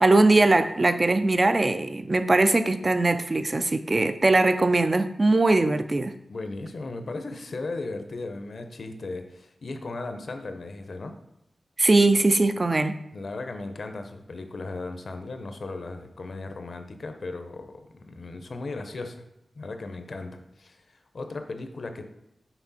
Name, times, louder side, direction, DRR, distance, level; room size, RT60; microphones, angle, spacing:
voice 1, 0.0-6.1 11.8-13.0, right 2 dB, 30° right, 9 dB, 0.3 m, -21 dB
voice 2, 6.3-11.2 13.1-19.2 19.6-22.0, left 3 dB, 60° left, 7 dB, 0.6 m, -36 dB
5.9 x 4.2 x 4.1 m, 0.84 s
wide cardioid pair, 110°, 0 cm